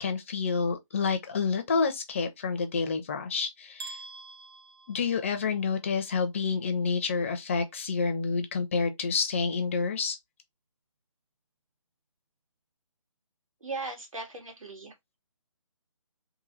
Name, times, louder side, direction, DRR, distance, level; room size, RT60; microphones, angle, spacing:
voice 1, 0.0-4.0 4.9-10.2, left 5 dB, 25° left, 0.5 m, -28 dB
sound 1, 3.8-5.8, right 3 dB, 45° right, 0.8 m, -45 dB
voice 2, 13.6-15.2, right 3 dB, 80° right, 2.5 m, -38 dB
3.9 x 2.7 x 3.9 m
hypercardioid pair, 165°, 17 cm